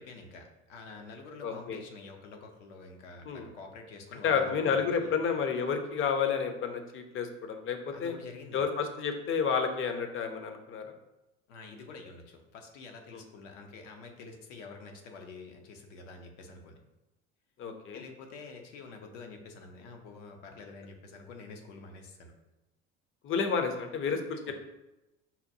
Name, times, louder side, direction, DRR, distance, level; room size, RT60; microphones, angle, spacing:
voice 1, 0.0-5.2 7.9-8.6 11.5-16.8 17.9-22.3 24.4-24.5, left 4 dB, 75° left, 3 dB, 0.7 m, -48 dB
voice 2, 1.4-1.8 3.3-3.5 4.2-8.1 8.5-10.8 13.1-13.2 17.6-18.0 23.2-24.5, left 6 dB, 35° left, 6 dB, 0.6 m, -30 dB
5.5 x 2.2 x 2.7 m, 0.99 s
hypercardioid pair, 65°, 37 cm